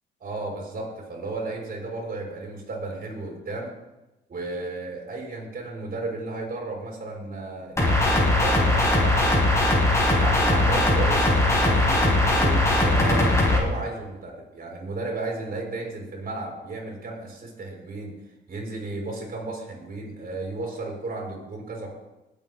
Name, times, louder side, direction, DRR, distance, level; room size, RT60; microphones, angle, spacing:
voice 1, 0.2-3.7 4.3-9.6 10.1-18.1 18.5-21.9, right 2 dB, 50° right, -1 dB, 6.0 m, -34 dB
sound 1, 7.8-13.6, left 2 dB, 15° left, 5.3 m, -20 dB
20.0 x 9.1 x 3.9 m, 0.99 s
cardioid pair, 90°, 20 cm